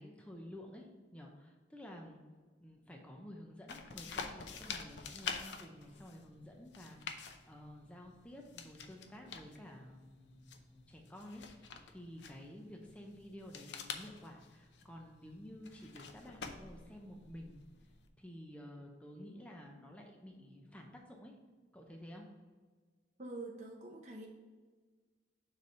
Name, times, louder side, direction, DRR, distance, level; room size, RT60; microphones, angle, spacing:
voice 1, 0.0-2.2 2.6-17.6 18.2-21.4 21.7-22.3, left 1 dB, 5° left, 1 dB, 0.7 m, -52 dB
sound 1, 3.7-18.1, left 5 dB, 80° left, 0.6 m, -48 dB
voice 2, 23.2-24.3, right 2 dB, 40° right, 0 dB, 0.8 m, -46 dB
6.8 x 3.3 x 5.4 m, 1.4 s
head